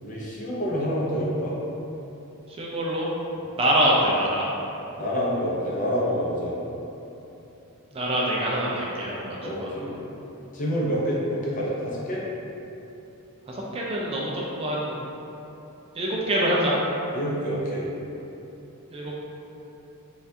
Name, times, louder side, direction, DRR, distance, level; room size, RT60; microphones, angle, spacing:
voice 1, 0.0-1.5 4.9-6.5 9.4-10.0 10.5-12.2 17.1-17.9, equal, 35° left, -6 dB, 0.6 m, -27 dB
voice 2, 2.6-3.1 3.6-4.5 7.9-9.2 9.6-9.7 13.5-14.3 14.6-15.0 16.0-16.8 18.9-19.2, right 1 dB, 25° right, -4 dB, 0.4 m, -24 dB
4.3 x 2.4 x 2.7 m, 3.0 s
head